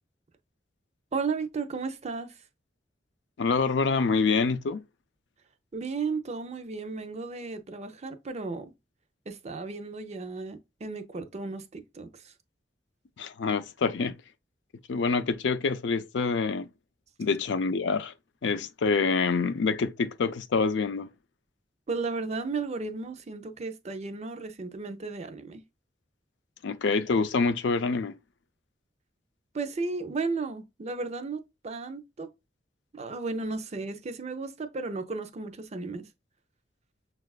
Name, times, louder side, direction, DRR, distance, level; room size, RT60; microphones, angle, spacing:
voice 1, 1.1-2.3 5.7-8.7 9.3-12.3 21.9-25.6 29.5-32.3 32.9-36.1, right 4 dB, 40° right, 0.6 m, -34 dB
voice 2, 3.4-4.8 13.2-14.2 14.9-16.7 17.2-18.1 18.4-21.1 26.6-28.2, left 4 dB, 75° left, 0.5 m, -26 dB
6.4 x 2.4 x 2.3 m
head